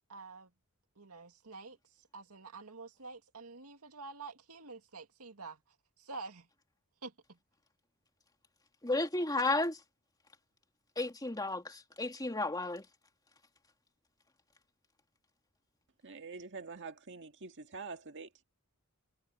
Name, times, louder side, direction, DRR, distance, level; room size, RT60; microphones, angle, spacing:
voice 1, 0.1-0.5 1.0-5.6 6.0-6.5 7.0-7.4, right 3 dB, 85° right, 2.3 m, -48 dB
voice 2, 8.8-9.8 11.0-12.9, left 2 dB, 15° left, 2.7 m, -33 dB
voice 3, 16.0-18.4, right 4 dB, 55° right, 1.9 m, -46 dB
head